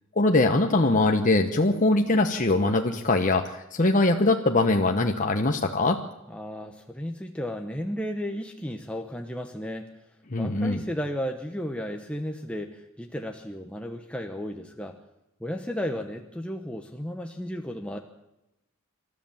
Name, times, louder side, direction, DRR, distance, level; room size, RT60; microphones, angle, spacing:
voice 1, 0.2-6.0 10.3-10.8, left 2 dB, 40° left, 4 dB, 1.2 m, -22 dB
voice 2, 6.3-9.9 10.4-15.0 15.4-18.0, equal, 5° left, 3 dB, 1.1 m, -34 dB
27.5 x 13.5 x 7.3 m, 0.93 s
head